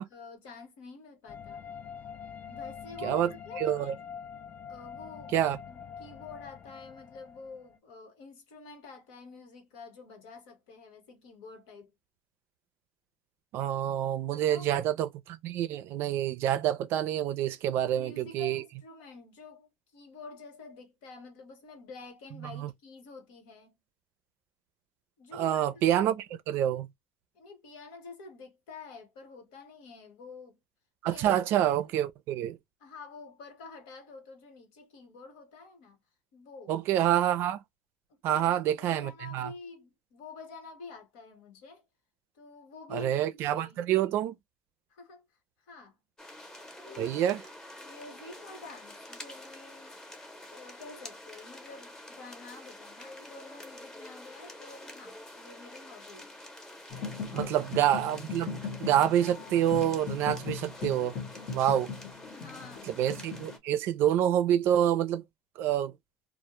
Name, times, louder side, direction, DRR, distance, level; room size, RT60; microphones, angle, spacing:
voice 1, 0.1-1.7 2.4-3.9 4.7-5.3 5.7-11.9 14.3-14.9 17.7-23.7 25.2-26.1 27.3-30.6 31.0-31.9 32.8-36.0 36.3-36.7 38.1-41.8 42.3-43.8 44.9-45.3 45.6-46.0 46.8-47.4 47.8-50.0 50.5-56.3 57.3-57.7 61.5-61.7 62.2-63.1, left 4 dB, 85° left, 1.1 m, -48 dB
sound 1, 1.3-7.8, left 7 dB, 35° left, 0.3 m, -44 dB
voice 2, 3.0-3.3 3.6-3.9 5.3-5.6 13.5-18.6 22.4-22.7 25.3-26.9 31.0-32.6 36.7-37.6 38.2-39.5 42.9-44.3 47.0-47.4 57.3-61.2 61.5-61.9 62.9-65.2 65.6-65.9, right 11 dB, 65° right, 0.4 m, -27 dB
sound 2, 46.2-63.6, left 1 dB, 15° left, 0.7 m, -48 dB
sound 3, 56.9-63.6, left 5 dB, 60° left, 0.8 m, -39 dB
2.1 x 2.1 x 2.9 m
cardioid pair, 120°, 4 cm